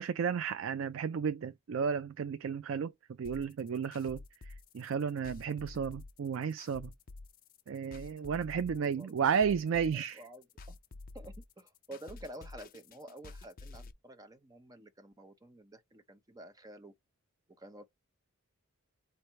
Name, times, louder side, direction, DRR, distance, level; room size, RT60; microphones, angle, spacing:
voice 1, 0.0-2.9 3.2-4.2 4.5-6.9 7.7-10.2, right 6 dB, 65° right, 0.4 m, -33 dB
sound 1, 3.2-13.9, left 3 dB, 40° left, 0.5 m, -50 dB
voice 2, 8.8-9.1 9.9-10.8 11.1-16.9 17.6-17.8, right 1 dB, 15° right, 0.6 m, -50 dB
4.5 x 2.6 x 4.5 m
head